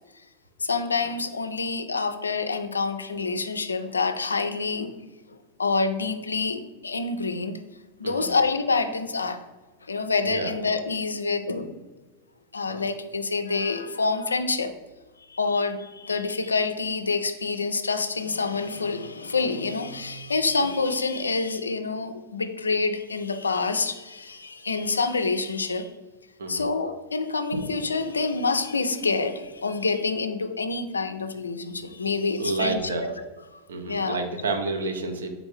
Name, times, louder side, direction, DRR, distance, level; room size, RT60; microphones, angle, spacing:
voice 1, 0.6-5.0 5.3-7.6 8.0-9.4 9.8-11.8 12.5-14.7 15.3-25.9 26.5-33.6 33.9-34.2, left 4 dB, 75° left, 9 dB, 0.3 m, -27 dB
voice 2, 32.4-33.0 33.7-35.3, right 3 dB, 65° right, 5 dB, 0.6 m, -29 dB
3.8 x 3.4 x 3.2 m, 1.2 s
figure-of-eight pair, 90°, 0 cm